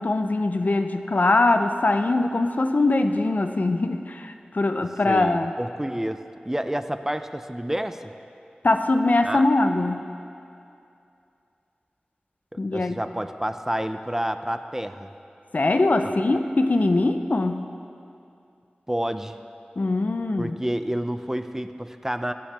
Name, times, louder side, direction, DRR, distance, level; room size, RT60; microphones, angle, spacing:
voice 1, 0.0-5.5 8.6-10.0 12.6-13.0 15.5-17.7 19.8-20.5, left 2 dB, 60° left, 7 dB, 0.5 m, -22 dB
voice 2, 5.0-8.1 9.2-9.4 12.5-15.1 18.9-19.4 20.4-22.3, right 1 dB, 15° right, 9 dB, 0.4 m, -29 dB
18.5 x 7.4 x 3.4 m, 2.6 s
wide cardioid pair, 50°, 3 cm